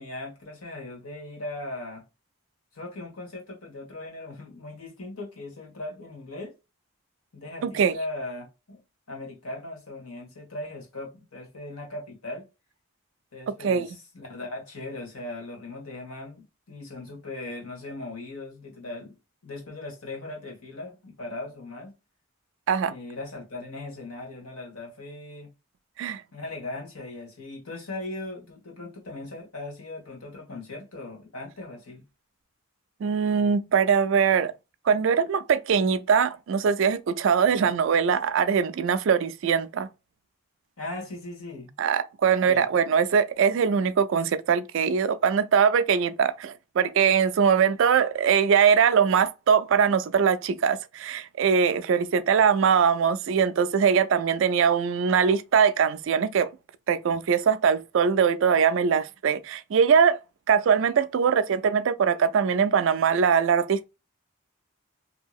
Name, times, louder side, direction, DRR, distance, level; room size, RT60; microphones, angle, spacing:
voice 1, 0.0-2.0 2.7-6.5 7.3-8.8 9.1-12.5 13.3-19.1 19.4-21.9 22.9-25.5 26.3-32.0 37.5-37.8 40.8-41.7 42.4-42.7, left 2 dB, 85° left, 1.3 m, -39 dB
voice 2, 7.6-7.9 13.6-13.9 22.7-22.9 26.0-26.2 33.0-34.5 34.9-39.9 41.8-56.5 56.9-60.2 60.5-63.9, right 6 dB, 60° right, 0.3 m, -22 dB
2.8 x 2.7 x 2.3 m
head